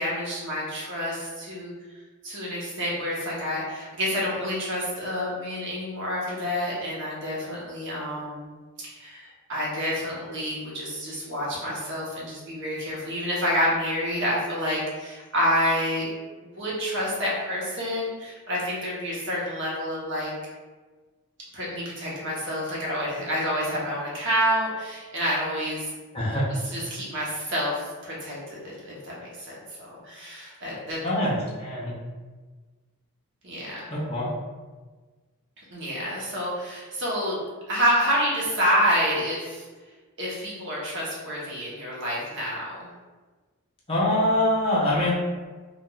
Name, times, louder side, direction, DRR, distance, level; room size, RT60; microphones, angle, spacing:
voice 1, 0.0-1.7 2.2-8.5 8.8-16.1 16.5-20.3 21.5-25.8 26.7-31.0 33.4-33.8 35.7-37.4 37.7-39.6 40.2-42.9, equal, 55° right, -5 dB, 0.9 m, -28 dB
voice 2, 26.1-26.5 31.0-31.9 33.9-34.3 43.9-45.1, left 1 dB, 25° left, -6 dB, 0.6 m, -24 dB
3.3 x 2.4 x 2.3 m, 1.3 s
head